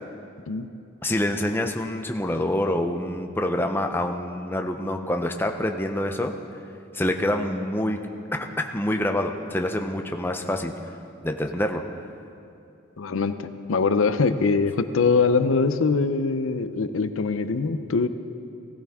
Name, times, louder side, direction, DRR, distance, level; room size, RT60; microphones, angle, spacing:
voice 1, 1.0-6.3 6.9-8.0 8.3-10.7 11.2-11.8, left 1 dB, 10° left, 4 dB, 0.6 m, -26 dB
voice 2, 13.0-18.1, left 4 dB, 85° left, 10 dB, 0.6 m, -23 dB
16.5 x 15.5 x 3.6 m, 2.6 s
head